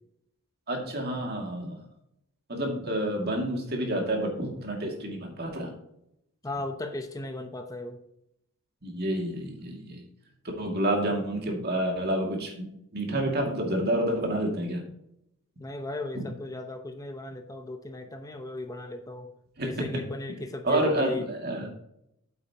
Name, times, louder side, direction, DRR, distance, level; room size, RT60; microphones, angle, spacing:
voice 1, 0.7-1.8 2.5-5.7 8.8-10.0 10.6-12.7 12.9-14.8 19.6-19.7 20.6-21.7, right 1 dB, 45° right, 1 dB, 2.3 m, -29 dB
voice 2, 6.4-8.0 15.6-19.3 19.6-21.3, left 2 dB, 15° left, 6 dB, 0.8 m, -36 dB
8.6 x 8.2 x 2.9 m, 0.78 s
head